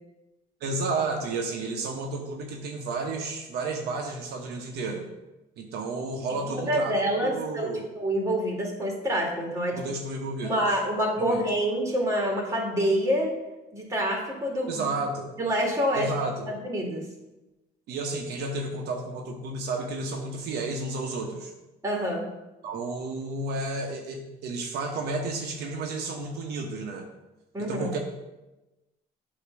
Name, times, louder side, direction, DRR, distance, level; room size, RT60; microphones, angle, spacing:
voice 1, 0.6-5.1 5.6-7.9 9.7-10.8 11.2-11.4 14.6-15.3 15.9-16.5 17.9-21.5 22.6-27.1 27.6-28.0, right 3 dB, 75° right, 2 dB, 0.9 m, -32 dB
voice 2, 6.6-7.7 8.0-9.8 10.4-13.3 13.7-14.8 15.4-16.1 16.5-17.1 21.8-22.3 27.5-27.9, equal, 20° right, 0 dB, 2.1 m, -27 dB
8.3 x 2.9 x 6.0 m, 1.0 s
cardioid pair, 110°, 17 cm